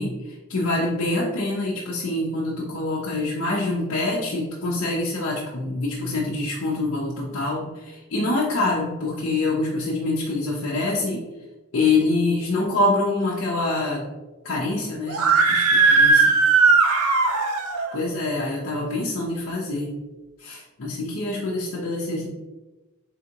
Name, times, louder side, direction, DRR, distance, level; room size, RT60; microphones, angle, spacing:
voice 1, 0.0-11.2 11.7-14.1 14.4-16.3 17.9-20.0 20.4-22.3, left 2 dB, 60° left, -6 dB, 0.7 m, -25 dB
Screaming, 15.1-17.9, right 4 dB, 80° right, 0.6 m, -18 dB
3.9 x 3.5 x 2.9 m, 1.1 s
head